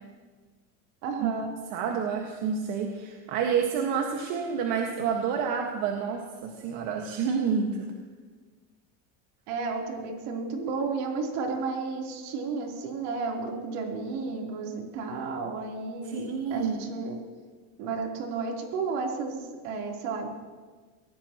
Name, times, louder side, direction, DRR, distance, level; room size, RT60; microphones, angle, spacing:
voice 1, 1.0-1.5 9.5-17.2 17.8-20.3, right 4 dB, 75° right, -1 dB, 3.6 m, -32 dB
voice 2, 1.7-7.9 16.0-16.8, right 6 dB, 60° right, 1 dB, 1.7 m, -29 dB
23.5 x 17.5 x 3.0 m, 1.5 s
cardioid pair, 150°, 35 cm